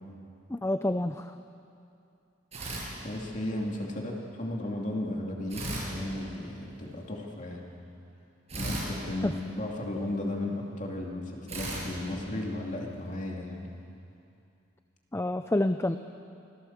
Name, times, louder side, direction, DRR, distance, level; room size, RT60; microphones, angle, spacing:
voice 1, 0.5-1.3 9.2-9.3 15.1-16.0, left 1 dB, 15° left, 9 dB, 0.5 m, -28 dB
sound 1, 2.5-3.7 5.5-6.9 8.5-10.2 11.5-13.0, right 1 dB, 35° right, 6.5 m, -38 dB
voice 2, 3.0-7.7 8.6-13.7, left 1 dB, 40° left, -1 dB, 2.7 m, -35 dB
26.0 x 17.0 x 7.3 m, 2.5 s
head